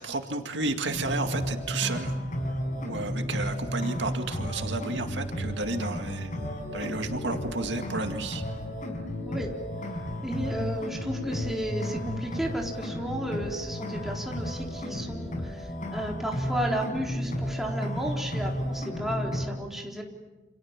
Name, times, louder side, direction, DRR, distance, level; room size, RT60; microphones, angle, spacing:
voice 1, 0.0-2.2 2.7-8.4, right 3 dB, 75° right, 5 dB, 2.2 m, -32 dB
sound 1, 0.9-19.5, equal, 45° left, 5.4 m, -33 dB
voice 2, 10.2-20.0, right 1 dB, ahead, 0 dB, 3.9 m, -33 dB
29.0 x 27.5 x 7.4 m, 1.1 s
head